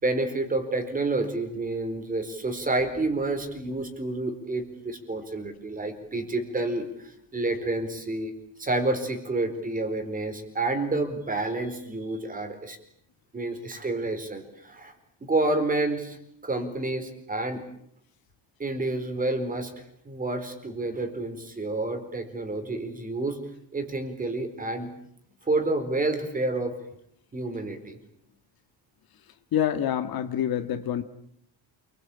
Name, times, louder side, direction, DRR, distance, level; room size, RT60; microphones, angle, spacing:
voice 1, 0.0-8.3 8.6-12.8 13.3-14.9 15.2-16.2 16.4-17.6 18.6-19.7 20.0-23.4 23.7-24.9 25.5-26.8 27.3-28.0, right 2 dB, 20° right, 7 dB, 4.4 m, -29 dB
voice 2, 29.5-31.0, left 10 dB, 55° left, 9 dB, 1.8 m, -26 dB
28.5 x 22.0 x 8.6 m, 0.70 s
cardioid pair, 165°, 44 cm